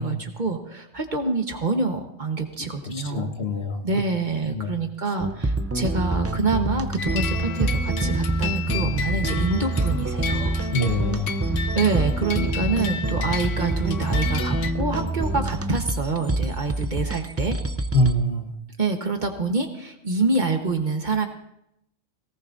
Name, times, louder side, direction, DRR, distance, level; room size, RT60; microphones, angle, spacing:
voice 1, 0.0-3.3 3.8-10.6 11.7-17.6 18.8-21.3, right 3 dB, 40° right, 4 dB, 1.3 m, -26 dB
voice 2, 2.9-3.8 4.5-4.7 10.7-11.3 17.9-18.5, left 1 dB, 55° left, 6 dB, 1.4 m, -24 dB
sound 1, 5.2-18.1, right 2 dB, 20° right, 0.4 m, -26 dB
sound 2, 7.0-14.7, left 7 dB, 85° left, 1.1 m, -33 dB
18.5 x 17.5 x 2.6 m, 0.79 s
omnidirectional pair, 1.3 m